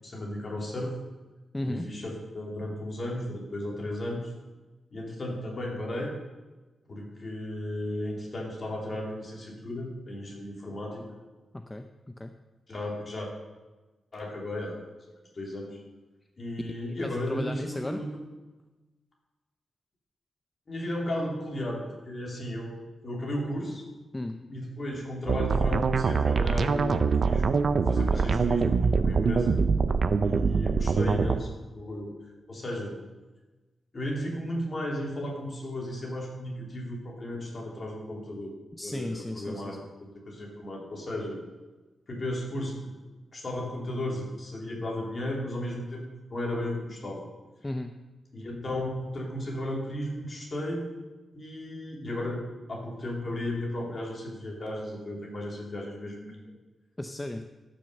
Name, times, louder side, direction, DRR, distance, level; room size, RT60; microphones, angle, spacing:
voice 1, 0.0-0.9 1.6-4.3 4.9-6.1 6.9-11.0 12.7-13.3 14.1-14.8 15.3-15.8 16.4-18.1 20.7-23.8 24.5-27.5 27.9-28.6 29.0-29.6 30.2-32.1 32.5-33.0 33.9-38.5 38.8-39.8 40.1-41.4 42.1-42.9 43.3-47.3 48.3-50.8 51.3-52.4 52.7-56.5, left 1 dB, 35° left, -1 dB, 3.0 m, -34 dB
voice 2, 1.5-1.9 11.5-11.9 12.2-12.3 17.0-18.0 24.1-24.4 28.1-28.3 38.8-39.8 47.6-47.9 57.0-57.5, left 1 dB, 15° left, 6 dB, 0.5 m, -34 dB
sound 1, 25.3-31.4, right 5 dB, 50° right, 0.5 m, -24 dB
13.0 x 6.4 x 6.6 m, 1.2 s
wide cardioid pair, 135°, 0 cm